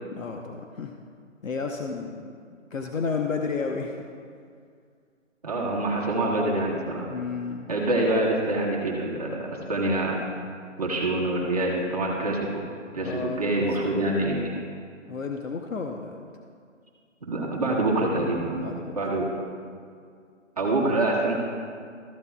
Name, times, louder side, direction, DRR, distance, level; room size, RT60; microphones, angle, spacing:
voice 1, 0.1-0.9 1.4-2.3 2.7-4.0 7.1-7.7 13.0-14.1 15.1-16.3 18.5-19.3, left 4 dB, 80° left, 2 dB, 0.9 m, -32 dB
voice 2, 5.4-7.1 7.7-10.2 10.8-12.5 12.9-14.6 17.2-18.6 18.9-19.2 20.6-21.3, right 2 dB, 30° right, -4 dB, 1.4 m, -25 dB
14.0 x 11.0 x 2.3 m, 2.2 s
hypercardioid pair, 175°, 39 cm